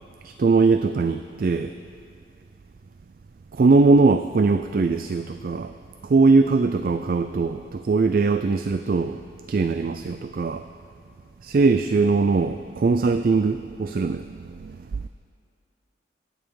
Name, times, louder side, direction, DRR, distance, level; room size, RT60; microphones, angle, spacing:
voice 1, 0.2-1.7 3.5-5.7 6.0-9.2 9.5-10.7 11.4-15.0, right 4 dB, 50° right, 9 dB, 0.3 m, -21 dB
22.5 x 9.1 x 4.7 m, 2.3 s
head